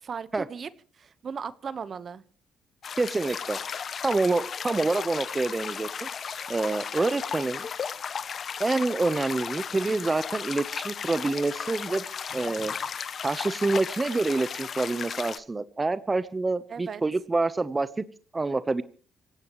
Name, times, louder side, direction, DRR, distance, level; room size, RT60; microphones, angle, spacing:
voice 1, 0.0-2.2 12.3-12.8 16.7-17.0, right 6 dB, 50° right, 16 dB, 1.2 m, -38 dB
sound 1, 2.8-15.4, left 7 dB, 50° left, 1.1 m, -35 dB
voice 2, 3.0-3.6 4.0-6.1 6.5-7.7 8.6-12.0 12.3-12.7 13.2-18.0 18.3-18.8, right 3 dB, 25° right, 14 dB, 1.0 m, -27 dB
26.0 x 17.0 x 3.1 m, 0.40 s
cardioid pair, 90°, 0 cm